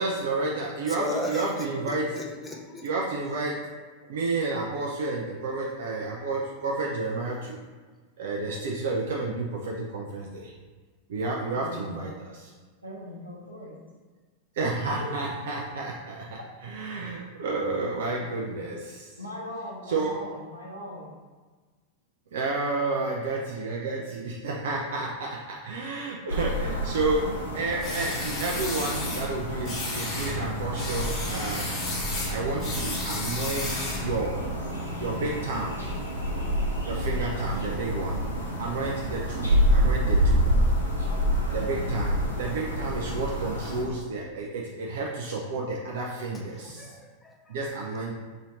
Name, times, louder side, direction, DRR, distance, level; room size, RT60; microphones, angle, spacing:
voice 1, 0.0-2.2 2.8-3.6 4.1-7.6 8.2-10.5 11.1-12.5 14.5-19.2 19.9-20.2 22.3-31.8 32.3-34.3 35.0-35.8 36.9-38.2 38.6-40.4 41.5-47.0 47.5-48.1, right 3 dB, 60° right, -2 dB, 0.4 m, -31 dB
voice 2, 1.0-1.5 1.9-2.8 34.7-34.9 46.5-47.4, left 1 dB, 15° left, 0 dB, 0.5 m, -35 dB
voice 3, 11.5-12.1 12.8-13.8 15.0-15.1 18.4-18.5 19.2-21.2, left 1 dB, 85° right, -3 dB, 0.8 m, -40 dB
sound 1, 26.3-43.8, equal, 85° left, 0.8 m, -28 dB
sound 2, 27.8-29.3 29.6-30.4 30.7-34.1, left 2 dB, 35° left, 1.1 m, -33 dB
3.0 x 2.7 x 3.9 m, 1.4 s
figure-of-eight pair, 90°, 0 cm